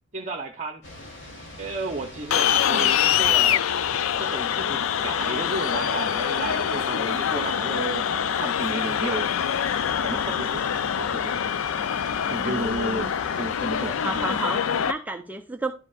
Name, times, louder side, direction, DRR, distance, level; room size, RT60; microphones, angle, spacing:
voice 1, 0.1-0.8 1.6-3.7 4.2-9.3 10.0-11.4 12.3-13.1 13.4-14.2, right 2 dB, 35° right, 5 dB, 0.8 m, -33 dB
sound 1, 0.8-14.4, left 1 dB, 65° left, 2.9 m, -42 dB
sound 2, 2.3-14.9, left 9 dB, 85° left, 0.4 m, -25 dB
voice 2, 12.4-13.1 14.0-15.7, right 2 dB, 10° right, 4 dB, 0.5 m, -31 dB
12.0 x 5.7 x 2.3 m, 0.38 s
head